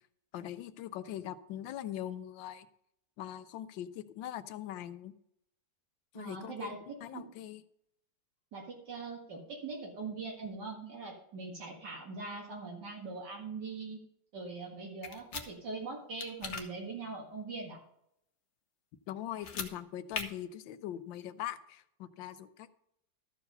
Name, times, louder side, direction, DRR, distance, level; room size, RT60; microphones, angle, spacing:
voice 1, 0.3-2.7 3.2-5.1 6.1-6.8 7.0-7.6 19.1-22.7, left 11 dB, 85° left, 13 dB, 1.4 m, -41 dB
voice 2, 6.1-7.3 8.5-14.0 14.3-17.8, right 3 dB, 65° right, -1 dB, 2.5 m, -42 dB
sound 1, 15.0-15.5 16.2-16.6 19.3-19.7 20.1-20.2, left 5 dB, 45° left, 1.2 m, -38 dB
13.0 x 4.7 x 6.7 m, 0.73 s
omnidirectional pair, 2.0 m